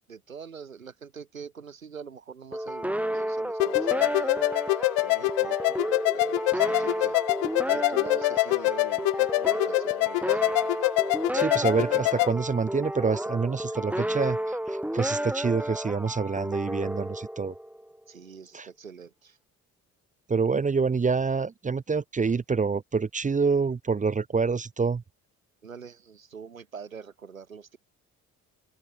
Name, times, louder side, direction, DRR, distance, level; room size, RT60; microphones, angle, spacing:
voice 1, 0.0-4.3 4.7-5.8 6.1-7.2 7.7-10.5 18.1-19.4 25.6-27.8, right 6 dB, 85° right, 2.9 m, -44 dB
sound 1, 2.5-17.9, right 1 dB, 5° right, 3.8 m, -32 dB
sound 2, 3.6-12.3, left 40 dB or more, 60° left, 0.8 m, -25 dB
voice 2, 11.3-17.5 18.5-18.7 20.3-25.0, right 5 dB, 20° right, 0.9 m, -27 dB
open air
figure-of-eight pair, 45°, 40 cm